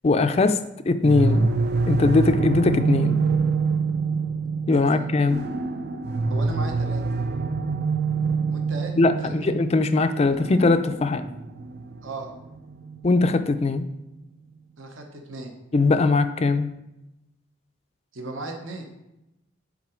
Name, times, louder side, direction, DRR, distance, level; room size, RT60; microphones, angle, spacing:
voice 1, 0.0-0.6 0.9-1.5 1.9-3.2 4.7-5.4 9.0-11.3 13.0-13.9 15.7-16.7, left 3 dB, 30° left, 10 dB, 0.4 m, -20 dB
sound 1, 1.0-13.8, right 4 dB, 50° right, 0.5 m, -26 dB
voice 2, 6.3-7.0 8.5-8.9 9.4-9.5 12.0-12.3 14.8-15.5 18.1-18.9, right 2 dB, 70° right, 3 dB, 0.9 m, -36 dB
7.2 x 3.9 x 5.0 m, 0.92 s
head